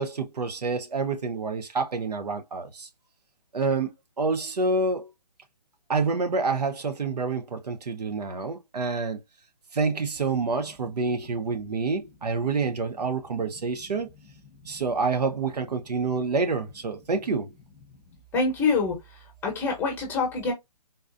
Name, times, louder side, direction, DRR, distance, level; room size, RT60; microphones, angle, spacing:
voice 1, 0.0-2.9 3.5-5.1 5.9-9.2 9.7-14.1 14.6-17.5, right 4 dB, 75° right, 0.9 m, -27 dB
voice 2, 18.3-19.0 19.4-20.5, left 4 dB, 10° left, 1.0 m, -25 dB
4.0 x 2.4 x 2.6 m
hypercardioid pair, 155°, 21 cm